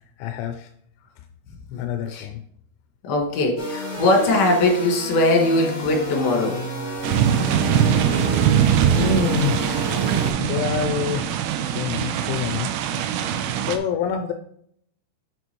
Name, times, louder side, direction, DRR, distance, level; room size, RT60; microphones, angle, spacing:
voice 1, 0.2-0.7 1.8-2.4 9.0-11.3 11.6-12.7 13.1-13.4 13.7-14.3, left 7 dB, 85° left, 6 dB, 3.0 m, -28 dB
voice 2, 3.0-6.6, left 1 dB, 60° left, 1 dB, 3.4 m, -20 dB
sound 1, 3.6-10.3, equal, 15° left, 2.0 m, -31 dB
sound 2, 7.0-13.8, right 9 dB, 85° right, 3.1 m, -22 dB
8.3 x 6.8 x 3.0 m, 0.66 s
omnidirectional pair, 5.4 m